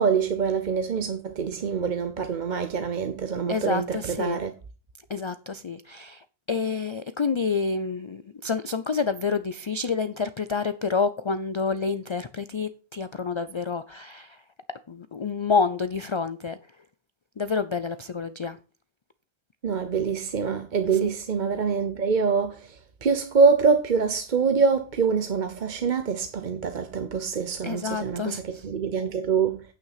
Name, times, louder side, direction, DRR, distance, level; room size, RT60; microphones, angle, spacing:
voice 1, 0.0-4.5 19.6-29.6, right 5 dB, 50° right, 0.9 m, -25 dB
voice 2, 3.5-4.4 5.1-14.4 14.9-16.6 17.4-18.6 21.0-21.1 27.6-28.6, left 5 dB, 40° left, 0.4 m, -28 dB
9.3 x 5.9 x 5.7 m
omnidirectional pair, 1.1 m